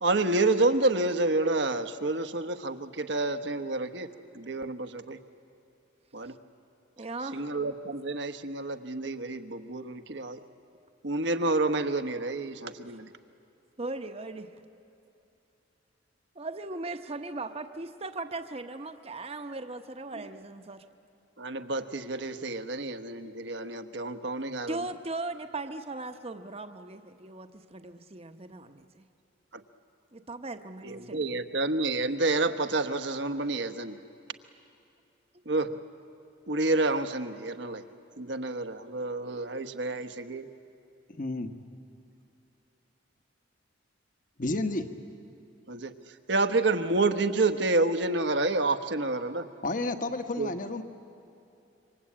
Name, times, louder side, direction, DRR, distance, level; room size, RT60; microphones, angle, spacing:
voice 1, 0.0-4.1 4.3-5.2 6.1-6.3 7.3-10.4 11.0-13.1 21.4-24.8 29.5-29.6 30.8-34.0 35.5-35.7 36.5-37.8 38.2-40.4 45.7-45.9 46.3-49.5 50.4-50.5, right 2 dB, 70° right, 9 dB, 1.2 m, -29 dB
voice 2, 7.0-7.5 12.9-13.0 13.8-14.5 16.3-20.8 24.7-29.1 30.1-31.4, right 2 dB, 30° right, 7 dB, 1.0 m, -38 dB
voice 3, 41.2-41.5 44.4-44.9 49.6-50.8, left 2 dB, 45° left, 7 dB, 1.3 m, -31 dB
27.0 x 24.5 x 8.7 m, 2.8 s
head